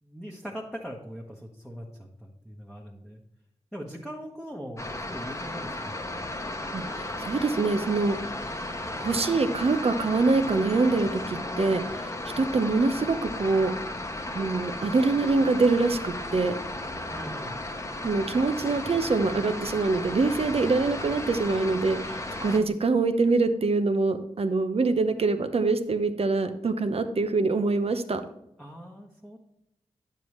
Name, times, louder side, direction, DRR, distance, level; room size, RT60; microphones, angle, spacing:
voice 1, 0.0-3.2 3.7-6.0 17.1-17.6 28.6-29.4, equal, 5° right, -2 dB, 1.2 m, -41 dB
sound 1, 4.8-22.6, left 1 dB, 25° left, 1.0 m, -35 dB
voice 2, 6.7-8.2 9.0-11.8 12.4-13.7 14.3-16.5 18.0-28.2, right 3 dB, 55° right, 9 dB, 0.8 m, -24 dB
9.5 x 6.9 x 3.2 m, 0.82 s
cardioid pair, 60°, 12 cm